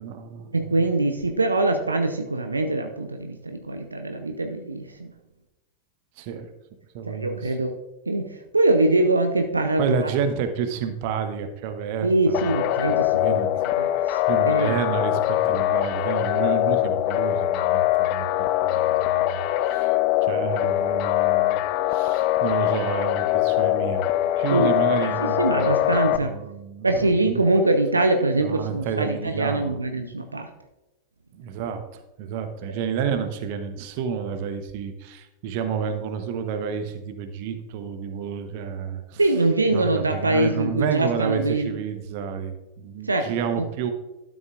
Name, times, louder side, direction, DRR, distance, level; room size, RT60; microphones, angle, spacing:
voice 1, 0.0-0.8 6.2-6.5 6.9-7.6 9.8-12.5 13.2-13.5 14.3-18.9 19.3-20.0 20.2-21.6 21.9-24.1 24.4-27.4 28.4-29.8 31.3-39.2 39.7-43.9, right 7 dB, 45° right, 8 dB, 0.9 m, -30 dB
voice 2, 0.5-5.1 7.1-7.7 8.1-10.0 12.0-13.5 13.8-14.7 24.5-24.7 25.0-26.3 26.8-30.5 39.2-41.7 43.1-43.3 43.6-43.7, right 2 dB, 80° right, 5 dB, 0.6 m, -23 dB
sound 1, 12.3-26.2, left 15 dB, 45° left, 0.3 m, -23 dB
12.5 x 7.2 x 2.4 m, 1.0 s
figure-of-eight pair, 90°, 0 cm